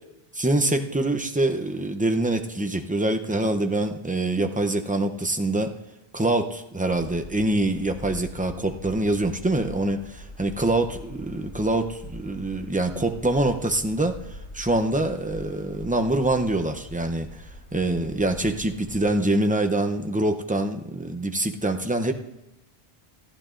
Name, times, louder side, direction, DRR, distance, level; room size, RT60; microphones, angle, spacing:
voice 1, 0.3-5.7 6.1-10.0 10.4-14.1 14.5-17.3 17.7-22.1, right 2 dB, 10° right, 5 dB, 0.4 m, -25 dB
sound 1, 6.9-19.1, left 1 dB, 15° left, 6.1 m, -43 dB
27.0 x 11.0 x 2.5 m, 0.92 s
omnidirectional pair, 1.0 m